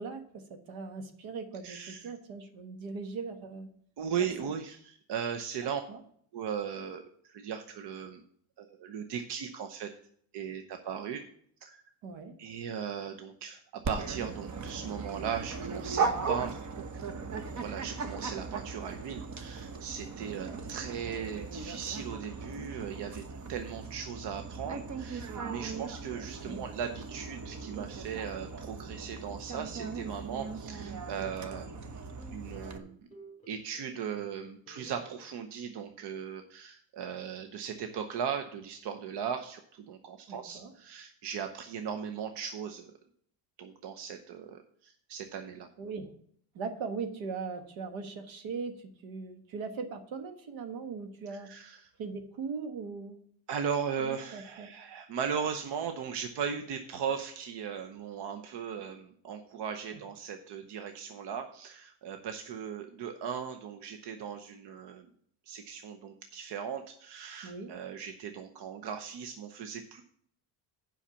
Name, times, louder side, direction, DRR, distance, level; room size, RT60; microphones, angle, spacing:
voice 1, 0.0-3.7 4.4-4.5 5.6-6.0 12.0-12.4 20.2-20.6 26.4-26.7 40.3-40.7 45.8-46.1 46.5-51.5 52.0-53.2 54.0-54.7 59.9-60.0 67.4-67.7, right 5 dB, 75° right, 7 dB, 1.5 m, -40 dB
voice 2, 1.6-2.0 4.0-5.8 6.3-8.2 8.6-9.9 10.3-11.2 11.6-11.8 12.4-16.9 17.5-31.8 32.3-33.0 33.5-42.9 43.6-45.7 51.3-51.9 53.5-65.1 65.5-70.0, right 7 dB, 60° right, 7 dB, 0.9 m, -38 dB
Dog, 13.8-32.8, right 4 dB, 35° right, 1.0 m, -38 dB
sound 1, 31.2-31.7 32.2-34.4 34.7-35.2, equal, 15° left, 1.7 m, -54 dB
7.3 x 5.7 x 7.1 m, 0.63 s
supercardioid pair, 85°, 47 cm